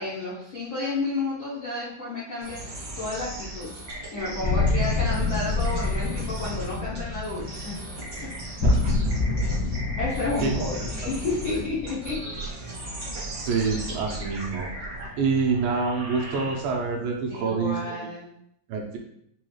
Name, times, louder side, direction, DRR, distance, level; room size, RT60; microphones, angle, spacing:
voice 1, 0.0-7.7 8.4-8.6 10.0-12.6 17.3-18.3, left 2 dB, 90° left, -8 dB, 1.1 m, -31 dB
sound 1, 2.4-16.9, right 2 dB, 55° right, 0.7 m, -38 dB
sound 2, 4.4-13.3, left 2 dB, 65° left, 1.1 m, -27 dB
voice 2, 8.6-9.2 10.4-10.5 11.0-11.1 11.5-11.6 13.4-14.7 15.2-18.0 18.7-19.0, right 4 dB, 85° right, 0 dB, 2.5 m, -27 dB
6.9 x 2.4 x 3.1 m, 0.71 s
omnidirectional pair, 4.1 m